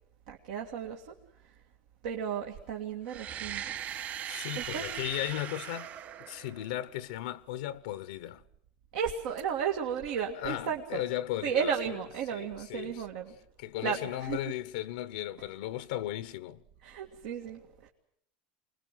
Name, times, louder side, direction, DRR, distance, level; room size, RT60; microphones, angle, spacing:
voice 1, 0.3-1.6 2.0-3.7 4.6-4.9 8.9-11.0 11.4-13.4 13.8-14.5 16.8-17.9, right 7 dB, 80° right, 2.1 m, -34 dB
sound 1, 3.0-7.0, right 10 dB, 45° right, 2.8 m, -39 dB
voice 2, 4.2-5.9 6.2-8.4 10.4-11.7 12.3-12.9 13.6-16.6, left 14 dB, 90° left, 0.9 m, -36 dB
25.0 x 20.5 x 7.5 m
supercardioid pair, 125°, 4 cm